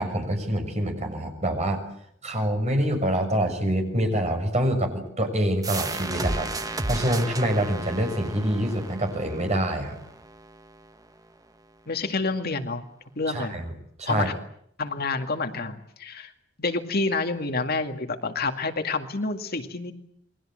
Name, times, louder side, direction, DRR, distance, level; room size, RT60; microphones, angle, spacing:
voice 1, 0.0-1.8 2.2-6.5 6.8-10.0 13.3-13.7 14.0-14.3, right 1 dB, 35° right, 5 dB, 6.4 m, -26 dB
sound 1, 5.6-11.0, right 2 dB, 20° right, 1.3 m, -33 dB
voice 2, 11.9-12.8 13.2-13.6 14.1-14.3 14.8-16.3 16.6-19.9, left 3 dB, 55° left, 6 dB, 2.2 m, -28 dB
28.5 x 22.0 x 7.7 m, 0.70 s
head